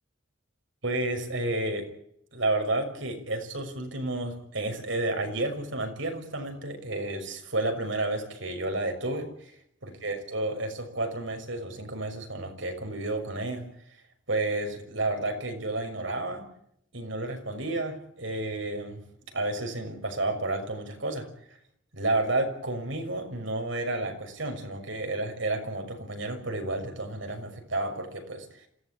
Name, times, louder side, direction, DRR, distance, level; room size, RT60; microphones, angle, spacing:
voice 1, 0.8-1.8 2.3-9.5 9.8-13.6 14.3-16.4 16.9-19.0 19.3-21.2 21.9-28.6, right 2 dB, 75° right, 5 dB, 6.2 m, -31 dB
27.0 x 17.0 x 8.6 m, 0.72 s
head